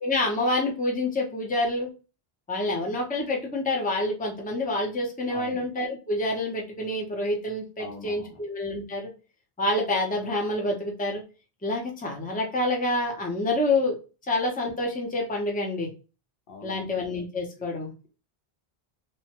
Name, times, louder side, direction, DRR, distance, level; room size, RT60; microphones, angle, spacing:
voice 1, 0.0-1.9 2.5-9.1 9.6-11.2 11.6-14.0 14.3-15.9 16.6-17.9, left 2 dB, 10° left, 0 dB, 0.6 m, -27 dB
voice 2, 5.3-5.7 7.8-8.4 16.5-17.0 17.6-17.7, left 3 dB, 65° left, 2 dB, 0.9 m, -42 dB
3.0 x 2.2 x 2.8 m, 0.33 s
omnidirectional pair, 1.0 m